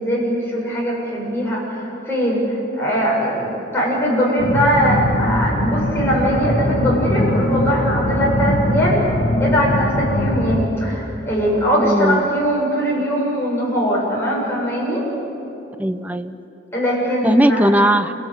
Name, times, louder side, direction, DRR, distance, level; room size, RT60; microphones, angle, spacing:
voice 1, 0.0-9.1 9.4-15.0 16.7-17.8, equal, 15° left, -5 dB, 7.4 m, -20 dB
sound 1, 4.4-10.6, left 1 dB, 60° left, 1.8 m, -21 dB
voice 2, 11.8-12.2 15.8-16.4 17.2-18.1, right 1 dB, 10° right, 10 dB, 0.6 m, -18 dB
28.5 x 18.0 x 8.2 m, 3.0 s
head